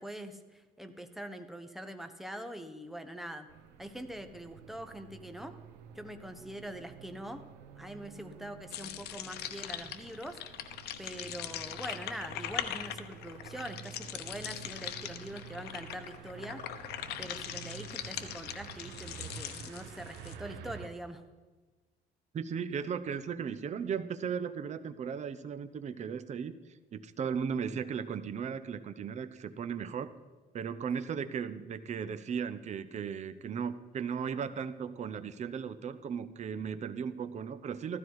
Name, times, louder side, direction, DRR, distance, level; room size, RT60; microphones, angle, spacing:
voice 1, 0.0-3.5 3.8-5.5 5.9-7.4 7.8-10.4 11.0-16.6 17.2-21.2, equal, ahead, 7 dB, 1.2 m, -43 dB
sound 1, 3.5-20.9, right 8 dB, 80° right, 1.1 m, -50 dB
sound 2, 8.7-20.4, left 11 dB, 75° left, 0.9 m, -41 dB
voice 2, 22.3-26.5 26.9-30.1 30.5-38.0, right 7 dB, 45° right, 12 dB, 0.8 m, -36 dB
15.0 x 13.0 x 4.8 m, 1.3 s
cardioid pair, 110°, 17 cm